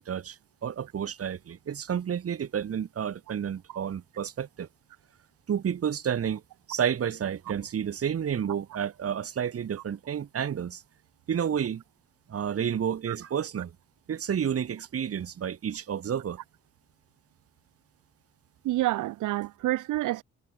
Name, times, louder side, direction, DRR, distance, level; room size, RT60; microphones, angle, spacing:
voice 1, 0.0-4.7 5.5-6.4 6.7-10.8 11.3-11.8 12.3-13.7 14.1-16.4, right 8 dB, 50° right, 2.4 m, -30 dB
voice 2, 18.6-20.2, right 16 dB, 90° right, 2.4 m, -28 dB
cardioid pair, 90°, 30 cm